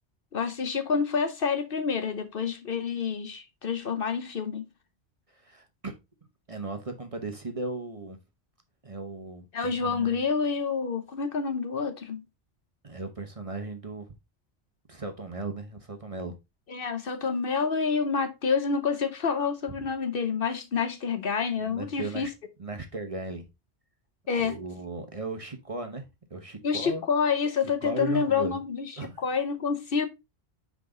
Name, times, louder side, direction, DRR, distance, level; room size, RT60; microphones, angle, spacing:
voice 1, 0.3-4.6 9.5-12.2 16.7-22.3 24.3-24.6 26.6-30.1, left 5 dB, 55° left, 0.9 m, -28 dB
voice 2, 5.3-5.9 6.5-8.2 8.8-9.5 9.8-10.2 12.8-14.1 14.9-16.3 21.6-22.3 22.6-23.4 24.4-26.0 26.3-27.0 27.8-28.6 29.0-29.2, right 3 dB, 35° right, 0.9 m, -36 dB
5.9 x 4.8 x 3.8 m
omnidirectional pair, 1.2 m